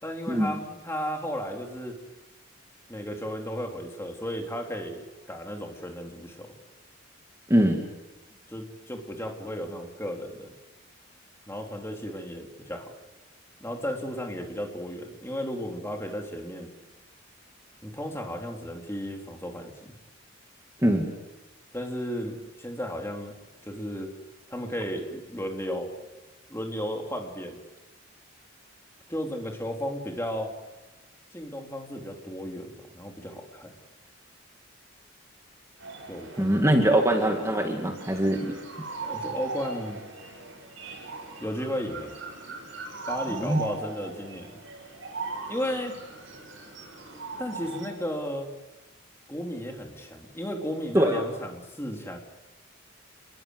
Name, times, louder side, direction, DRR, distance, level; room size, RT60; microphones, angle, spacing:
voice 1, 0.0-2.0 2.9-6.5 8.5-10.5 11.5-12.9 13.6-16.7 17.8-19.9 21.7-23.3 23.6-24.1 24.5-25.9 26.5-27.6 29.1-30.5 31.3-33.7 36.1-37.0 39.0-40.0 41.4-42.1 43.1-44.5 45.5-46.0 47.4-48.5 49.3-52.2, equal, 15° left, 2 dB, 3.5 m, -34 dB
voice 2, 7.5-7.8 20.8-21.1 36.4-38.5 43.4-43.6 50.9-51.2, right 1 dB, 15° right, 2 dB, 2.4 m, -22 dB
sound 1, 35.8-47.9, right 3 dB, 70° right, 7.8 m, -39 dB
30.0 x 22.0 x 8.2 m, 1.1 s
head